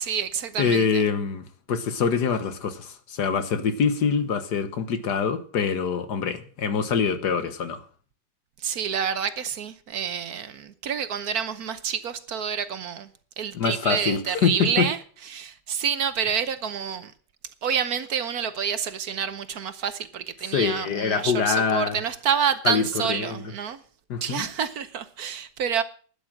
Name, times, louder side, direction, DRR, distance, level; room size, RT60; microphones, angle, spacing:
voice 1, 0.0-1.1 8.6-13.1 13.4-17.1 17.6-23.8 24.2-25.8, right 7 dB, 60° right, 1.3 m, -28 dB
voice 2, 0.6-7.8 13.5-14.9 20.5-21.9 22.6-22.8 23.1-23.4 24.1-24.5, left 6 dB, 65° left, 1.7 m, -25 dB
12.5 x 8.9 x 7.3 m
omnidirectional pair, 1.9 m